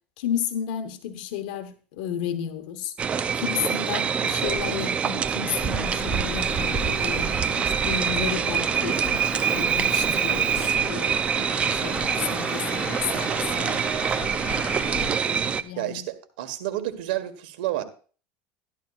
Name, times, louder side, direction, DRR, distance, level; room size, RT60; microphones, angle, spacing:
voice 1, 0.2-2.9 3.3-9.0 9.5-13.9 15.2-16.0, left 9 dB, 80° left, 1.1 m, -32 dB
sound 1, 3.0-15.6, right 7 dB, 25° right, 0.5 m, -25 dB
Traffic noise roadway noise, 5.6-15.1, left 4 dB, 25° left, 1.6 m, -36 dB
voice 2, 15.7-17.8, right 14 dB, 85° right, 1.6 m, -30 dB
13.0 x 11.5 x 2.5 m
supercardioid pair, 135°, 5 cm